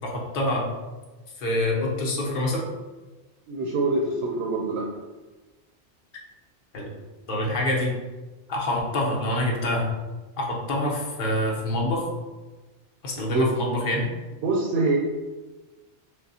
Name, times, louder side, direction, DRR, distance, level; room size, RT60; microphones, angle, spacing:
voice 1, 0.0-0.6 1.4-2.7 6.7-6.9 7.3-7.9 8.5-9.9 10.4-12.0 13.0-14.1, left 1 dB, 55° left, -2 dB, 1.0 m, -26 dB
voice 2, 3.5-4.9 13.2-13.5 14.4-15.0, right 3 dB, 75° right, 1 dB, 0.8 m, -25 dB
6.3 x 2.1 x 2.7 m, 1.2 s
omnidirectional pair, 1.2 m